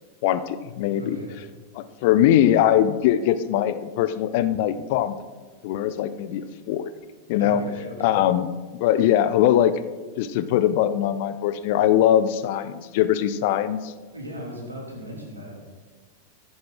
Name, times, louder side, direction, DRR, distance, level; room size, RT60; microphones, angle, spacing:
voice 1, 0.2-1.2 1.8-5.2 5.6-6.9 7.3-7.6 8.0-8.5 8.8-9.7 10.2-13.9, left 11 dB, 50° left, 14 dB, 0.5 m, -21 dB
voice 2, 1.0-1.4 7.4-8.2 14.1-15.5, equal, 80° right, -1 dB, 2.8 m, -37 dB
10.5 x 9.5 x 3.8 m, 1.4 s
figure-of-eight pair, 90°, 0 cm